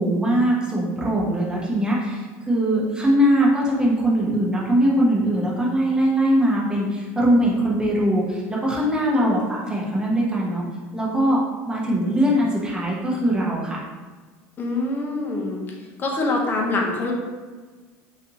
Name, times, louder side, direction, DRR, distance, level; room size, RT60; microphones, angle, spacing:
voice 1, 0.0-10.6 10.9-13.8, equal, 10° right, -4 dB, 0.9 m, -21 dB
voice 2, 14.6-15.6 16.0-17.1, left 2 dB, 30° left, 0 dB, 0.7 m, -25 dB
3.4 x 2.7 x 2.7 m, 1.4 s
supercardioid pair, 115°, 7 cm